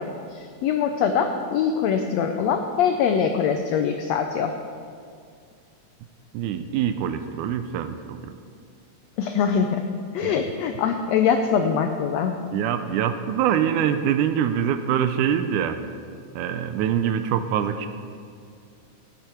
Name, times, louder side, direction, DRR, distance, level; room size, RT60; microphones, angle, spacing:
voice 1, 0.0-4.5 9.2-9.9 10.1-12.4, left 7 dB, 85° left, 6 dB, 1.5 m, -23 dB
voice 2, 6.3-8.2 10.2-10.3 12.5-15.8 16.4-17.9, right 9 dB, 80° right, 9 dB, 1.9 m, -24 dB
16.5 x 7.9 x 4.4 m, 2.2 s
omnidirectional pair, 3.7 m